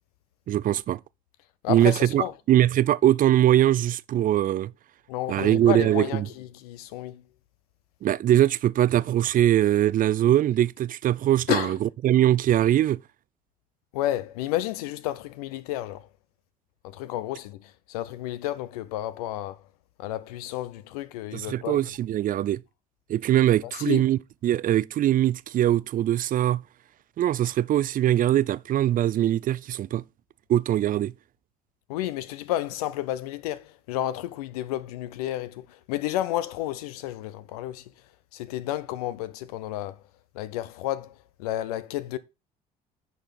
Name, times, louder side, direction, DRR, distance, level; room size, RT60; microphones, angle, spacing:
voice 1, 0.5-1.0 1.7-4.7 5.3-6.3 8.0-11.8 12.0-13.0 21.3-22.6 23.1-26.6 27.2-30.0 30.5-31.1, right 12 dB, 45° right, 0.5 m, -22 dB
voice 2, 1.6-2.3 5.1-7.3 11.5-11.8 13.9-16.1 16.8-19.6 20.0-21.8 23.6-24.0 31.9-37.9 38.3-40.0 40.3-42.2, left 14 dB, 85° left, 0.7 m, -31 dB
10.0 x 4.3 x 5.2 m
hypercardioid pair, 65°, 19 cm